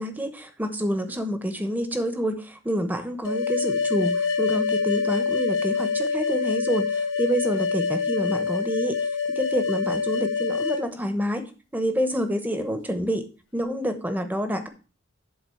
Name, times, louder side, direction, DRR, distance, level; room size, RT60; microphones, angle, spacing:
voice 1, 0.0-9.0 9.3-11.4 11.7-13.2 13.5-14.7, equal, 10° right, 8 dB, 1.0 m, -27 dB
sound 1, 3.3-10.8, left 5 dB, 80° left, 1.5 m, -25 dB
11.5 x 4.1 x 7.0 m, 0.36 s
head